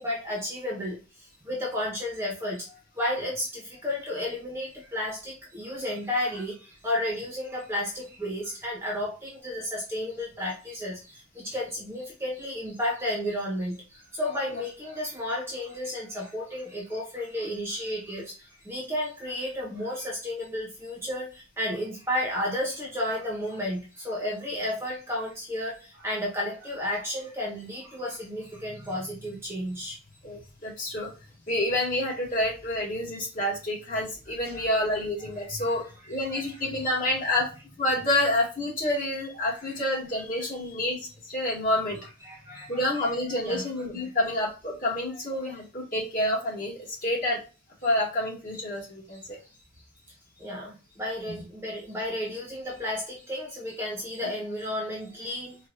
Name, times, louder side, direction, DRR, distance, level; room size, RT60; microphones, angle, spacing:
voice 1, 0.0-30.0 34.4-34.7 35.4-35.8 36.3-36.5 39.5-39.8 42.2-42.8 43.3-43.7 49.1-49.2 50.4-55.6, left 1 dB, 10° right, -3 dB, 1.1 m, -32 dB
voice 2, 30.2-31.1 31.5-37.5 37.8-42.0 42.7-47.4 47.8-49.4, left 1 dB, 40° left, -5 dB, 2.1 m, -28 dB
4.6 x 2.7 x 2.5 m, 0.32 s
head